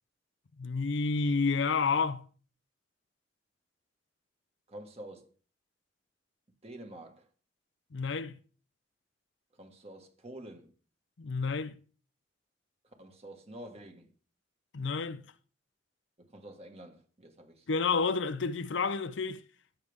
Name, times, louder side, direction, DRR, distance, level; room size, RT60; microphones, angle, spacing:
voice 1, 0.6-2.3 7.9-8.4 11.2-11.7 14.7-15.2 17.7-19.4, left 4 dB, 80° left, 0.6 m, -30 dB
voice 2, 4.7-5.3 6.6-7.3 9.6-10.7 12.8-14.1 16.2-17.7, right 1 dB, 35° right, 1.8 m, -48 dB
17.0 x 6.7 x 3.6 m
head